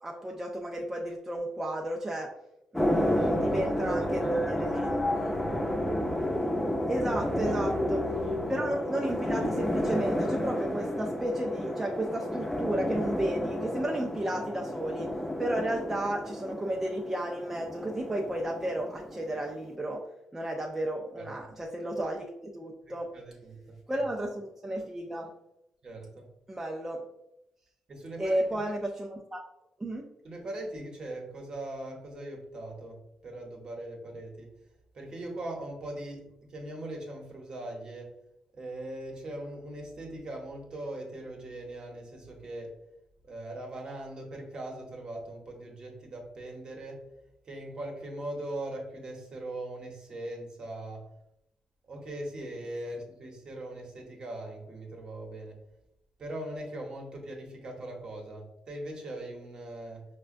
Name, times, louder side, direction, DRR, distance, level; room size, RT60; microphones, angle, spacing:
voice 1, 0.0-2.3 2.7-5.3 6.9-8.0 8.5-15.1 15.4-20.0 20.3-23.1 23.9-25.3 26.5-27.0 28.2-29.4 29.8-30.0, right 1 dB, 15° right, 0 dB, 0.4 m, -33 dB
sound 1, 2.7-19.6, left 1 dB, 10° left, 0.7 m, -31 dB
voice 2, 3.2-3.5 3.9-5.7 7.4-8.6 21.2-21.3 22.8-24.0 25.8-26.3 27.9-28.7 30.2-34.5 34.9-38.2 38.5-42.7 43.2-47.0 47.4-51.1 51.9-55.6 56.2-60.0, right 1 dB, 45° right, 1 dB, 0.9 m, -40 dB
4.8 x 2.2 x 2.5 m, 0.82 s
cardioid pair, 105°, 2 cm